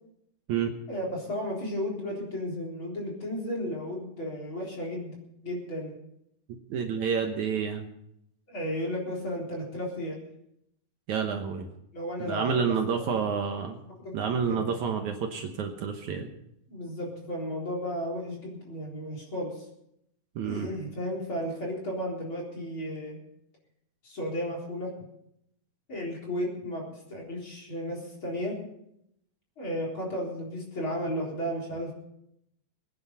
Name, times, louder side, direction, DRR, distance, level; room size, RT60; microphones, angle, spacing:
voice 1, 0.9-6.0 8.5-10.2 11.9-13.2 13.8-14.6 16.7-19.7 20.4-23.2 24.0-25.1 25.9-28.6 29.6-31.9, equal, 35° left, -3 dB, 4.5 m, -34 dB
voice 2, 6.7-7.8 11.1-11.7 12.3-13.8 14.1-16.3 20.4-20.7, right 6 dB, 65° right, 4 dB, 2.3 m, -29 dB
23.0 x 9.8 x 5.5 m, 0.78 s
omnidirectional pair, 4.0 m